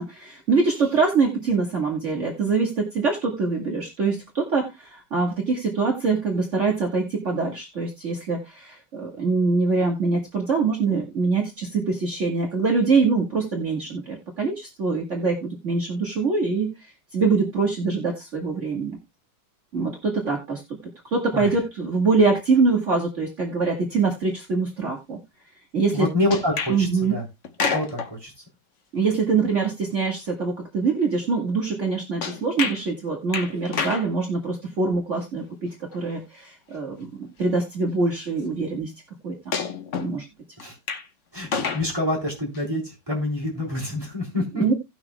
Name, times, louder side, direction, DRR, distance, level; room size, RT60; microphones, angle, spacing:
voice 1, 0.0-19.0 19.7-20.8 21.0-25.2 25.7-26.1 26.7-27.2 28.9-38.9 39.2-39.5 40.0-40.3 44.5-44.7, right 4 dB, 45° right, 0 dB, 1.9 m, -24 dB
voice 2, 25.9-27.3 27.7-28.3 40.6-40.8 41.3-44.7, left 1 dB, 15° right, -3 dB, 3.6 m, -27 dB
sound 1, 26.3-26.8 27.4-28.1 32.2-32.8 33.3-34.1 35.9-36.0 37.2-37.3 39.5-40.1 40.6-41.1 41.4-41.9 42.5-42.6, left 5 dB, 50° left, 1.2 m, -28 dB
18.0 x 6.0 x 2.2 m, 0.23 s
omnidirectional pair, 1.9 m